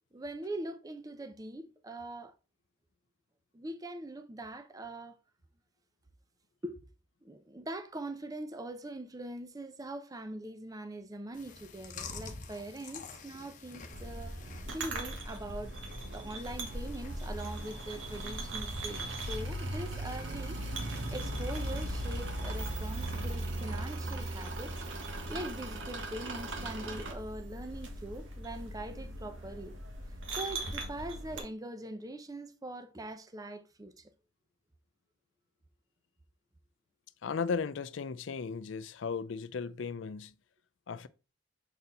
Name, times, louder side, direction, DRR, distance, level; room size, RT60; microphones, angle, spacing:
voice 1, 0.1-2.3 3.5-5.2 6.6-6.8 7.2-14.3 14.7-15.8 16.1-20.6 21.1-24.7 25.1-29.8 30.3-34.1, right 1 dB, 20° right, 0.6 m, -42 dB
Chewing mastication, 11.3-23.2, left 4 dB, 45° left, 0.9 m, -50 dB
sound 1, 13.9-31.4, right 1 dB, 90° right, 1.6 m, -40 dB
sound 2, 16.6-27.1, right 2 dB, 75° right, 1.2 m, -41 dB
voice 2, 37.2-40.3 40.9-41.1, left 5 dB, 80° left, 0.4 m, -36 dB
6.7 x 4.3 x 4.0 m
head